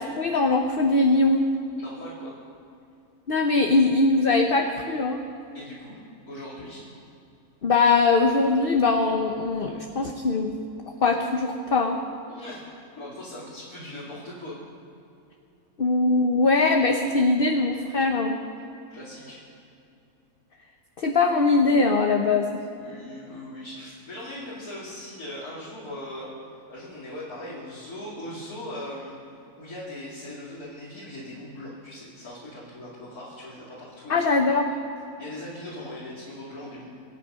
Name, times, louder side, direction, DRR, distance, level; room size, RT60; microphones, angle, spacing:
voice 1, 0.0-1.4 3.3-5.2 7.6-10.6 11.0-12.0 15.8-18.4 21.0-22.5 34.1-34.7, left 3 dB, 45° left, 3 dB, 0.9 m, -21 dB
voice 2, 1.8-2.3 5.5-6.0 6.3-6.9 12.3-14.5 18.9-19.4 22.7-26.3 26.7-29.2 29.6-34.1 35.2-36.9, left 1 dB, 70° left, -8 dB, 3.2 m, -39 dB
26.0 x 9.1 x 5.6 m, 2.6 s
omnidirectional pair, 1.6 m